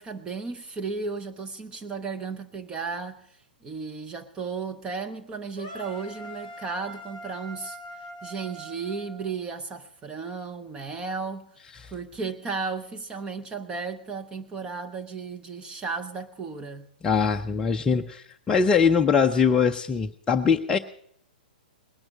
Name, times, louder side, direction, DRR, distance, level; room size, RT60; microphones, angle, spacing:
voice 1, 0.0-3.2 3.6-7.8 8.2-11.5 11.9-16.9, right 4 dB, 15° right, 0.9 m, -34 dB
sound 1, 5.6-9.7, right 1 dB, 40° right, 5.4 m, -42 dB
voice 2, 17.0-20.8, left 6 dB, 15° left, 0.6 m, -22 dB
20.0 x 10.5 x 6.1 m
figure-of-eight pair, 115°, 5 cm